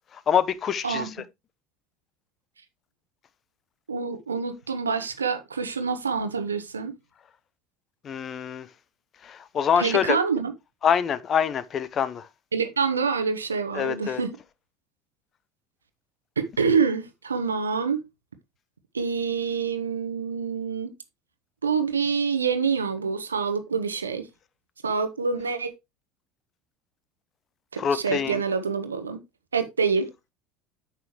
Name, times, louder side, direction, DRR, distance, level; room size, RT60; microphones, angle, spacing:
voice 1, 0.3-1.1 8.0-8.7 9.2-10.2 10.8-12.3 13.7-14.2 27.8-28.4, left 8 dB, 35° left, 0.8 m, -25 dB
voice 2, 3.9-6.9 9.8-10.5 12.5-14.4 16.4-18.0 18.9-20.9 21.6-24.3 24.8-25.7 27.7-29.2 29.5-30.1, right 5 dB, 80° right, 1.1 m, -26 dB
9.1 x 6.2 x 3.1 m
figure-of-eight pair, 70°, 0 cm